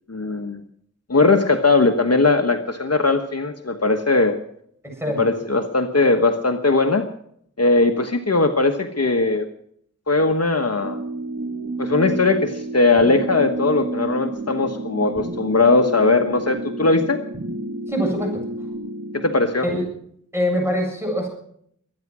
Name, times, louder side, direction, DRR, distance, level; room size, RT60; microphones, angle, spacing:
voice 1, 0.1-0.6 1.1-4.4 5.2-7.0 7.6-9.5 10.1-11.0 11.8-17.2 19.1-19.7, left 3 dB, 50° left, 6 dB, 1.3 m, -19 dB
voice 2, 4.8-5.2 17.9-18.4 19.6-19.8 20.3-21.3, equal, 10° right, 1 dB, 7.6 m, -23 dB
sound 1, 10.8-19.5, right 2 dB, 45° right, 1.8 m, -30 dB
24.0 x 9.7 x 6.2 m, 0.67 s
wide cardioid pair, 55°, 32 cm